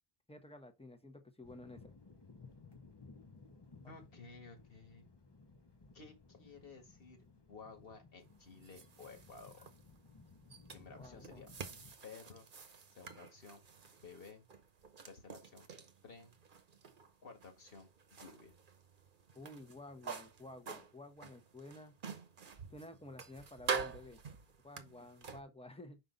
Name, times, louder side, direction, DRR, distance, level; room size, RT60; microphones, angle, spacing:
voice 1, 0.3-2.0 3.8-3.9 10.9-11.4 19.3-21.9 22.7-24.2 24.6-26.0, left 1 dB, 5° left, 1.0 m, -52 dB
sound 1, 1.4-11.9, left 4 dB, 25° left, 0.8 m, -59 dB
voice 2, 3.9-5.1 5.9-7.2 7.5-9.6 10.7-11.5 12.0-12.5 12.9-13.6 14.0-14.5 15.1-15.7 16.0-16.3 17.2-18.6, left 4 dB, 65° left, 1.9 m, -54 dB
sound 2, 8.2-25.4, right 5 dB, 55° right, 1.1 m, -47 dB
5.6 x 5.4 x 3.8 m
omnidirectional pair, 1.0 m